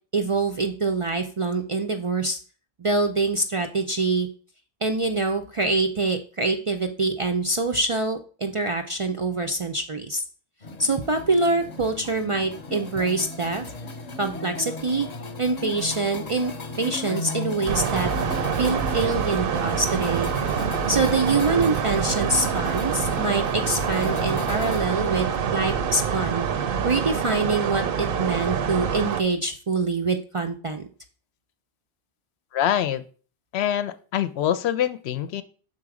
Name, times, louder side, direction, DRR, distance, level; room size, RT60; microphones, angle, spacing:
voice 1, 0.1-2.4 2.8-4.3 4.8-10.2 10.8-13.7 14.2-15.1 15.4-16.5 16.8-18.1 18.6-20.3 20.9-26.4 26.8-30.9, right 3 dB, 50° right, 5 dB, 0.4 m, -25 dB
sound 1, 10.6-24.9, left 3 dB, 45° left, 0.8 m, -36 dB
sound 2, 17.7-29.2, right 7 dB, 65° right, 0.8 m, -26 dB
voice 2, 32.5-33.0 33.5-35.4, left 10 dB, 85° left, 12 dB, 0.8 m, -24 dB
6.1 x 4.0 x 4.8 m, 0.40 s
omnidirectional pair, 1.1 m